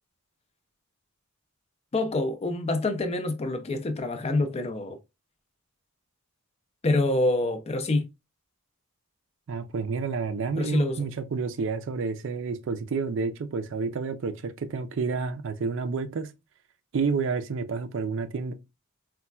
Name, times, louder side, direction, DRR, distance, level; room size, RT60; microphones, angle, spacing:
voice 1, 1.9-5.0 6.8-8.1 10.6-11.0, left 2 dB, 30° left, 0.3 m, -26 dB
voice 2, 9.5-16.3 16.9-18.5, right 4 dB, 60° right, 0.4 m, -29 dB
4.1 x 2.2 x 2.2 m
head